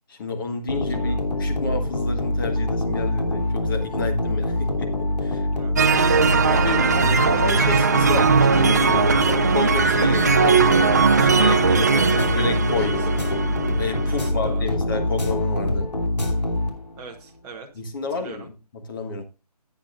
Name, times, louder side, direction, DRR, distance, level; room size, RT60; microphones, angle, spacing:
voice 1, 0.1-5.5 6.5-13.0 13.8-15.9 17.8-19.3, left 3 dB, 35° left, 4 dB, 1.5 m, -30 dB
sine loop, 0.7-17.1, left 1 dB, 85° left, 3.0 m, -25 dB
voice 2, 0.9-1.2 5.5-5.8 11.4-13.3 14.1-14.6 17.0-17.7 18.1-18.5, right 4 dB, 10° right, 1 dB, 0.8 m, -38 dB
sound 1, 5.8-14.3, right 5 dB, 25° right, 0.4 m, -19 dB
14.5 x 8.8 x 2.5 m, 0.28 s
figure-of-eight pair, 160°, 20 cm